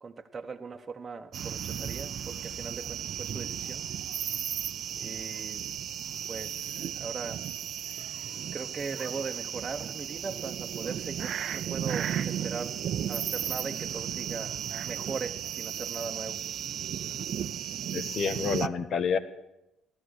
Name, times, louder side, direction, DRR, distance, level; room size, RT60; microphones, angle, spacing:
voice 1, 0.0-3.8 5.0-5.7 6.3-7.4 7.9-8.2 8.5-14.6 14.8-16.4, right 5 dB, 30° right, 2 dB, 1.0 m, -39 dB
sound 1, 1.3-18.7, right 9 dB, 55° right, 0.5 m, -35 dB
voice 2, 17.9-19.2, left 6 dB, 50° left, 10 dB, 1.4 m, -28 dB
14.0 x 13.0 x 6.5 m, 0.89 s
supercardioid pair, 85°, 0 cm